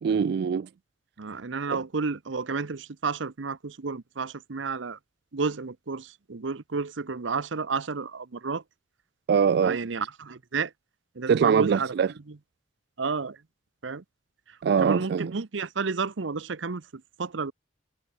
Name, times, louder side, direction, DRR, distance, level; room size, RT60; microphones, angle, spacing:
voice 1, 0.0-0.7 9.3-9.8 11.3-12.1 14.6-15.3, right 6 dB, 60° right, 0.3 m, -22 dB
voice 2, 1.2-5.0 5.3-8.6 9.6-10.7 11.1-11.9 12.3-12.4 13.0-13.4 13.8-14.0 14.5-17.5, right 4 dB, 80° right, 0.8 m, -31 dB
head